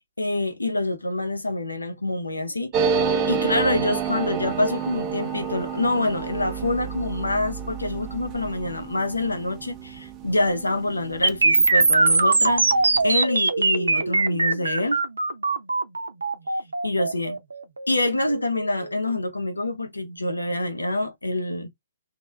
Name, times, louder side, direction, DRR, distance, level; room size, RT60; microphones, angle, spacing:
voice 1, 0.2-12.7 12.9-15.0 16.8-17.4 17.9-21.7, left 2 dB, 80° left, 0.9 m, -26 dB
sound 1, 2.7-11.9 12.2-12.3 12.5-13.1, right 6 dB, 25° right, 0.5 m, -29 dB
sound 2, 11.2-19.2, right 3 dB, 70° right, 0.6 m, -21 dB
3.2 x 2.3 x 3.2 m
figure-of-eight pair, 125°, 0 cm